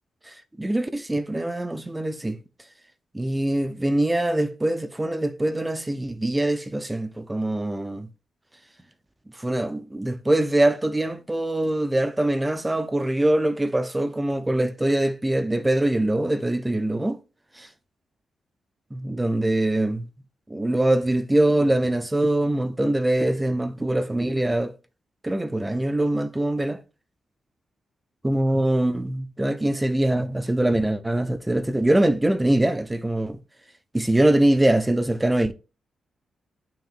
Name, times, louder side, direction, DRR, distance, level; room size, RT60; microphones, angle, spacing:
voice 1, 0.2-2.4 3.1-8.1 9.3-17.2 18.9-20.1 20.5-24.7 25.2-26.8 28.2-33.4 33.9-35.5, right 1 dB, 10° right, 0.5 m, -23 dB
10.0 x 5.9 x 2.5 m
wide cardioid pair, 130°, 0 cm